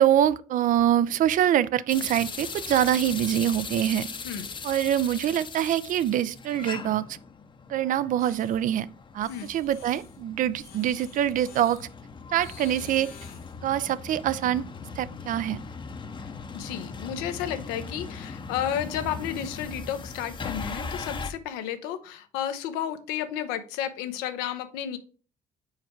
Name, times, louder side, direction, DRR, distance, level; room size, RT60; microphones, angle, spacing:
voice 1, 0.0-4.1 4.6-7.0 7.7-8.9 9.1-11.9 12.3-13.1 13.6-14.6 15.0-15.6, right 11 dB, 60° right, 0.4 m, -24 dB
sound 1, 1.9-21.3, left 4 dB, 30° left, 0.7 m, -39 dB
sound 2, 8.2-8.6 9.2-10.2 10.6-11.9 12.4-13.6, left 7 dB, 75° left, 1.5 m, -49 dB
voice 2, 16.2-25.0, left 10 dB, 90° left, 0.7 m, -32 dB
4.8 x 4.5 x 4.3 m
supercardioid pair, 70°, 16 cm